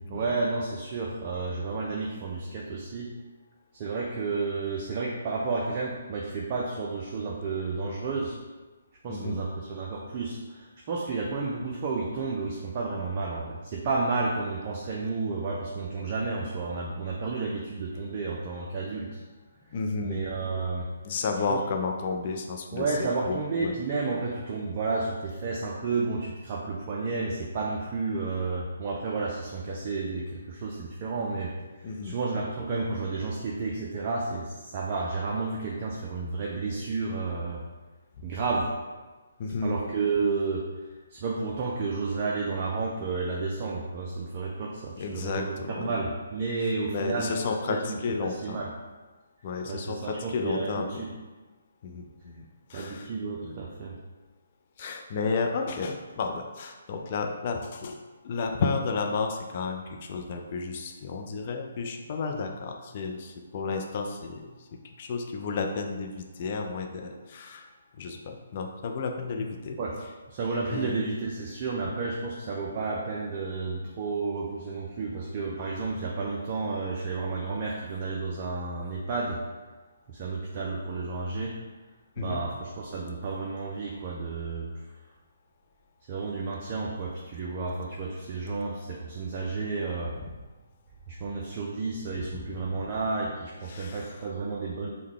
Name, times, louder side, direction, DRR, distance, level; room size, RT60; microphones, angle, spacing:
voice 1, 0.0-3.1 3.7-8.4 9.0-19.2 20.0-20.9 21.5-21.6 22.7-31.6 31.8-37.6 38.2-38.7 39.6-48.7 49.6-51.1 52.7-53.9 69.8-70.0 70.3-79.4 80.1-81.6 82.2-84.9 86.1-90.2 91.1-94.9, right 3 dB, 35° right, -3 dB, 0.5 m, -31 dB
voice 2, 19.7-20.2 21.0-22.9 23.3-23.7 31.8-32.1 39.4-39.7 45.0-45.9 46.9-48.7 49.4-51.0 51.8-53.1 53.4-53.6 54.8-58.0 58.2-64.7 65.0-67.7 68.0-69.8 70.7-71.1 82.2-82.4 92.3-92.4 93.7-94.2, left 4 dB, 40° left, 3 dB, 0.5 m, -32 dB
4.5 x 2.2 x 3.6 m, 1.2 s
figure-of-eight pair, 140°, 0 cm